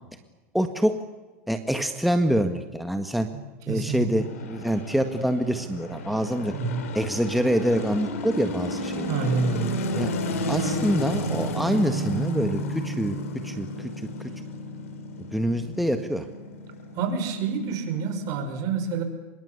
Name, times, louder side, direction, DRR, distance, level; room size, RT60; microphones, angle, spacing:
voice 1, 0.5-1.0 1.5-3.3 3.7-6.5 6.9-9.1 9.9-10.1 10.5-13.2 13.4-14.1 15.3-16.3, equal, ahead, 6 dB, 1.8 m, -25 dB
voice 2, 3.7-4.1 6.5-6.8 9.0-9.7 16.9-19.0, right 5 dB, 50° right, 7 dB, 5.8 m, -27 dB
sound 1, 4.2-18.4, left 1 dB, 80° left, 4.6 m, -32 dB
25.0 x 22.5 x 8.3 m, 1.2 s
hypercardioid pair, 105°, 7 cm